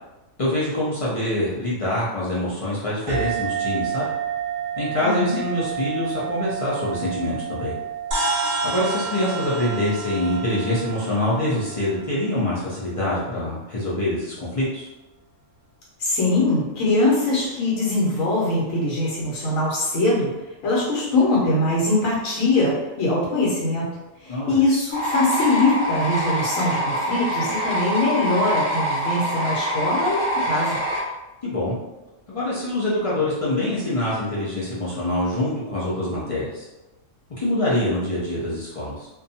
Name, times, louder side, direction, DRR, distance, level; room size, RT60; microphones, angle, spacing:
voice 1, 0.4-4.1 4.8-7.7 8.6-14.9 24.3-24.6 31.4-31.7 32.3-36.7 37.4-39.1, left 1 dB, 50° left, -7 dB, 0.4 m, -25 dB
sound 1, 3.1-12.1, right 9 dB, 85° right, 1.0 m, -31 dB
voice 2, 5.0-5.4 16.0-20.3 20.6-23.9 24.2-30.8, left 2 dB, 80° left, -5 dB, 1.1 m, -22 dB
sound 2, 8.1-12.7, right 2 dB, 60° right, 1.0 m, -30 dB
sound 3, 24.9-31.0, right 1 dB, 30° right, 1.1 m, -25 dB
2.6 x 2.2 x 2.7 m, 1.0 s
omnidirectional pair, 1.4 m